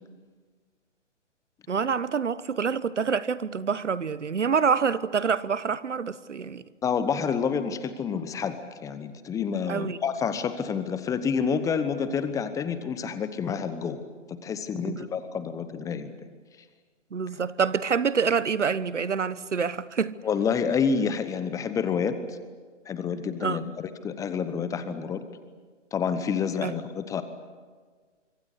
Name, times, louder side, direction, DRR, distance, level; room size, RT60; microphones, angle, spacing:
voice 1, 1.7-6.6 9.7-10.0 14.8-15.1 17.1-20.2 23.4-23.6 26.6-26.7, right 6 dB, 75° right, 1.2 m, -26 dB
voice 2, 6.8-14.0 14.3-16.1 20.2-22.4 22.9-25.2 25.9-27.2, left 6 dB, 10° left, 1.0 m, -28 dB
26.0 x 24.5 x 8.4 m
figure-of-eight pair, 135°, 36 cm